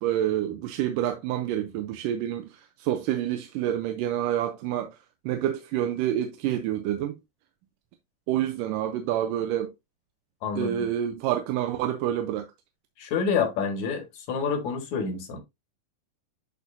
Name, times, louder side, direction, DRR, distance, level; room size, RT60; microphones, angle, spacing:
voice 1, 0.0-2.5 2.8-5.0 5.3-7.2 8.3-9.7 10.6-12.5, right 11 dB, 80° right, 2.2 m, -28 dB
voice 2, 10.4-10.9 13.0-15.4, left 6 dB, 60° left, 2.8 m, -28 dB
10.5 x 4.2 x 2.7 m
omnidirectional pair, 4.1 m